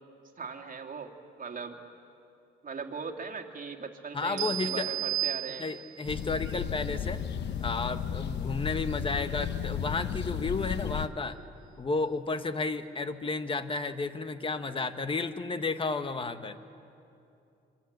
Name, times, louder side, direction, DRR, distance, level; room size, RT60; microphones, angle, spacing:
voice 1, 0.4-1.8 2.6-5.6, right 5 dB, 40° right, 2 dB, 2.6 m, -39 dB
voice 2, 4.1-4.9 5.6-7.2 7.6-11.4 11.8-16.6, left 3 dB, 25° left, 10 dB, 1.4 m, -32 dB
sound 1, 4.4-6.1, right 15 dB, 90° right, 1.8 m, -33 dB
sound 2, 6.1-11.1, left 8 dB, 60° left, 0.9 m, -34 dB
26.0 x 24.0 x 8.1 m, 2.7 s
cardioid pair, 90°, 20 cm